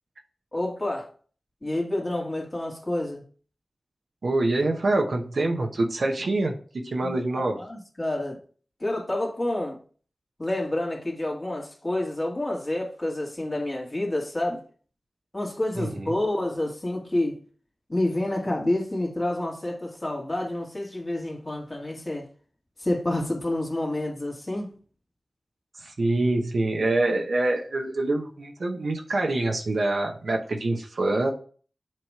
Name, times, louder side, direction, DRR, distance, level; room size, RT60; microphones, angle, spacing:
voice 1, 0.5-1.1 1.6-3.2 7.0-8.4 8.8-9.8 10.4-14.6 15.3-17.4 17.9-22.3 22.8-24.7, left 1 dB, 35° left, 2.2 m, -28 dB
voice 2, 4.2-6.5 6.8-7.6 15.8-16.1 25.8-31.3, right 2 dB, 75° right, 0.9 m, -25 dB
7.5 x 3.0 x 4.9 m
cardioid pair, 45°, 0 cm